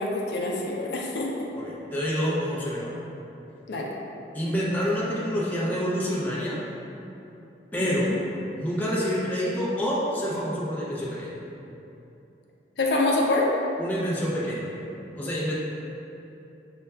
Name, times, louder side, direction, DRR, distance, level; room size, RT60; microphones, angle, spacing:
voice 1, 0.0-1.5 3.7-3.9 7.8-8.2 12.8-13.5, left 2 dB, 75° left, -2 dB, 0.5 m, -26 dB
voice 2, 1.6-3.0 4.3-6.6 7.7-8.2 8.6-11.4 13.8-14.7 15.1-15.6, equal, 10° left, -7 dB, 0.5 m, -27 dB
6.8 x 2.3 x 2.2 m, 2.9 s
head